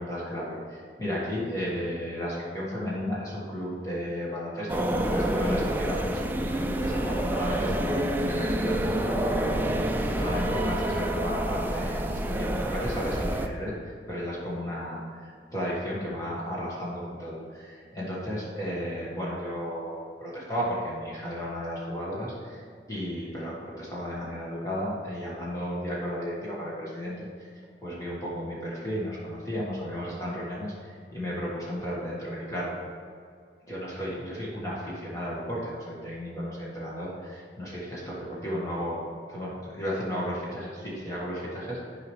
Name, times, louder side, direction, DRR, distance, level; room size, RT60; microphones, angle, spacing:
voice 1, 0.0-6.2 6.5-9.7 10.1-22.6 22.9-27.3 27.8-32.7 33.7-39.0 39.3-41.8, equal, 20° left, -7 dB, 1.5 m, -34 dB
sound 1, 4.7-13.5, right 1 dB, 10° right, 0.4 m, -28 dB
10.5 x 4.9 x 3.2 m, 2.2 s
head